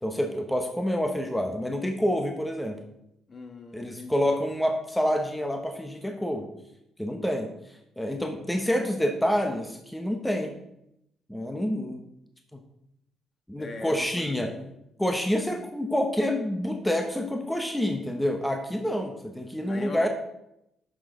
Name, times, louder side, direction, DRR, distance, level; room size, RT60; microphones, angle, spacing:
voice 1, 0.0-2.8 3.7-6.5 7.0-7.5 8.0-10.5 11.3-12.0 12.5-12.6 13.5-14.5 15.0-20.1, equal, 5° left, 1.0 m, -27 dB
voice 2, 3.3-4.1 13.6-14.7 19.7-20.1, left 3 dB, 45° left, 1.3 m, -40 dB
9.9 x 6.3 x 3.8 m
cardioid pair, 90°, 0 cm